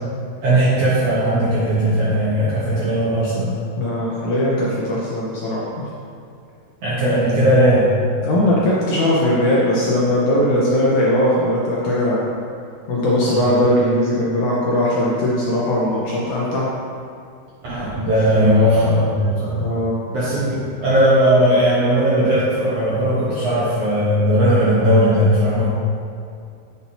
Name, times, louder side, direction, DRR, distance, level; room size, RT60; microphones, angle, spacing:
voice 1, 0.4-3.5 6.8-7.9 13.2-13.4 17.6-19.6 20.1-25.7, equal, 65° right, -9 dB, 1.7 m, -17 dB
voice 2, 2.1-2.6 3.8-5.7 8.2-12.2 12.9-16.7 18.1-18.9 19.6-20.0, left 1 dB, 70° left, -6 dB, 1.9 m, -19 dB
8.4 x 5.9 x 2.8 m, 2.3 s
omnidirectional pair, 4.2 m